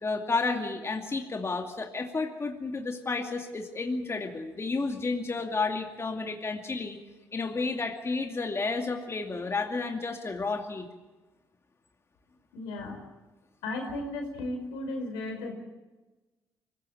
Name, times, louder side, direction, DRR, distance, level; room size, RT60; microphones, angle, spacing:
voice 1, 0.0-7.0 7.3-10.9, left 3 dB, 35° left, 3 dB, 2.5 m, -31 dB
voice 2, 12.5-13.0 13.6-15.5, left 2 dB, 85° left, 3 dB, 4.8 m, -35 dB
24.5 x 15.5 x 8.8 m, 1.2 s
hypercardioid pair, 55°, 8 cm